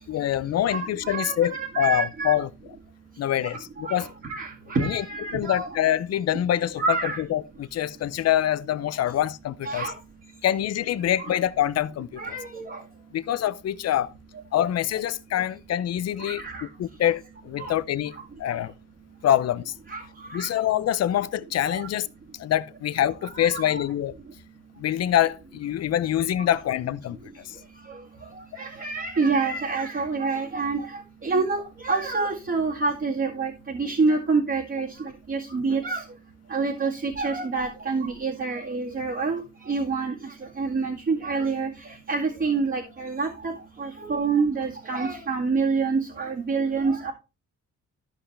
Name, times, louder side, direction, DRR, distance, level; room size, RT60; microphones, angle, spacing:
voice 1, 0.1-2.5 3.2-4.1 4.8-5.0 5.3-6.8 7.2-9.9 10.4-12.4 13.1-14.1 14.5-16.4 16.8-18.1 18.4-18.7 19.2-19.7 20.3-22.1 22.4-24.1 24.8-27.6, left 11 dB, 55° left, 0.6 m, -25 dB
voice 2, 0.7-2.4 3.8-5.7 6.8-7.2 9.6-9.9 11.3-11.4 12.2-12.8 16.3-16.7 17.6-17.7 19.9-20.0 20.3-20.5 21.7-21.9 23.3-23.9 28.6-36.0 36.5-39.4 39.7-40.1 40.6-41.7 42.1-43.5 43.8-47.1, right 4 dB, 40° right, 2.0 m, -27 dB
13.0 x 5.7 x 3.3 m
cardioid pair, 90°, 30 cm